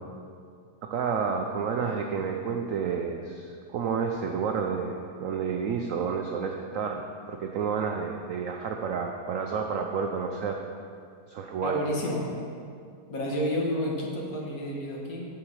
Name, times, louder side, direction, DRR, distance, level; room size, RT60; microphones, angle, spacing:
voice 1, 0.8-10.6 11.3-11.8, right 6 dB, 75° right, 3 dB, 0.7 m, -30 dB
voice 2, 11.6-12.2 13.1-15.3, equal, 55° left, -2 dB, 1.7 m, -30 dB
7.8 x 7.0 x 4.7 m, 2.3 s
omnidirectional pair, 1.9 m